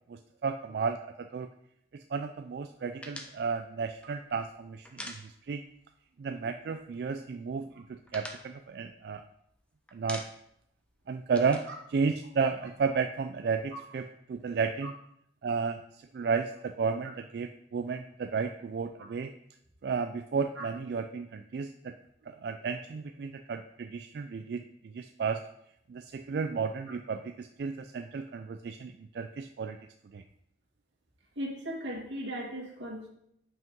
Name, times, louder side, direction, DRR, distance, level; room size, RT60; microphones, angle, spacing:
voice 1, 0.1-1.5 2.1-5.1 5.5-5.6 6.2-9.2 9.9-10.2 11.1-11.6 11.9-14.9 15.4-15.8 16.1-19.3 19.8-21.9 22.3-24.6 24.9-25.4 25.9-29.8 30.1-30.2, right 5 dB, 60° right, 7 dB, 0.3 m, -33 dB
sound 1, 3.0-5.8 6.1-6.2 6.5-7.2 7.6-9.6 9.9-10.6 10.9-12.7, left 1 dB, 5° left, 0.6 m, -46 dB
voice 2, 31.4-33.1, equal, 90° right, -3 dB, 2.2 m, -37 dB
5.7 x 5.3 x 5.3 m, 0.74 s
head